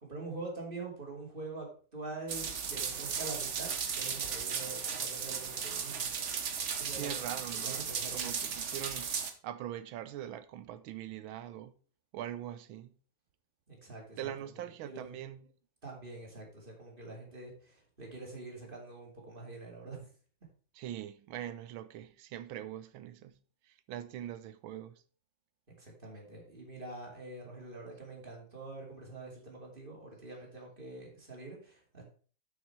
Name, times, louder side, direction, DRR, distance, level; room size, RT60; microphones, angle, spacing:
voice 1, 0.0-6.1 6.7-7.1 7.5-8.3 13.7-14.3 14.8-15.2 15.8-20.1 25.8-32.0, right 3 dB, 25° right, 2.7 m, -45 dB
sound 1, 2.3-9.3, right 6 dB, 50° right, 0.9 m, -36 dB
voice 2, 6.9-9.2 9.4-11.7 12.1-12.9 14.2-15.4 20.7-23.3 23.6-25.0, right 11 dB, 75° right, 1.5 m, -42 dB
7.5 x 6.9 x 4.6 m
omnidirectional pair, 2.3 m